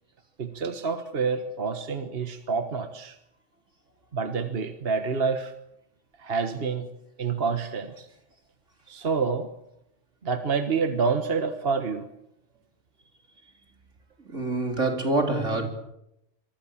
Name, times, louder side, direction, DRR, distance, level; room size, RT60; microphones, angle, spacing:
voice 1, 0.4-3.2 4.1-5.5 6.2-6.9 7.2-8.1 8.9-9.5 10.2-12.1, right 5 dB, 55° right, 1.6 m, -28 dB
voice 2, 14.2-15.7, right 2 dB, 80° right, 4.3 m, -26 dB
26.0 x 23.5 x 7.3 m
omnidirectional pair, 1.2 m